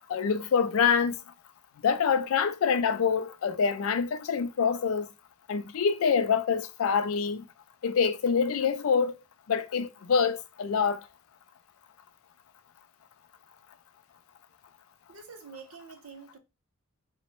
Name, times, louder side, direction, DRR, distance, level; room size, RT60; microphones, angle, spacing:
voice 1, 0.1-1.1 1.8-5.1 5.5-7.4 7.8-9.1 9.5-11.0, left 6 dB, 70° left, 0.4 m, -26 dB
voice 2, 15.1-16.4, right 5 dB, 75° right, 0.7 m, -47 dB
2.9 x 2.1 x 2.9 m
head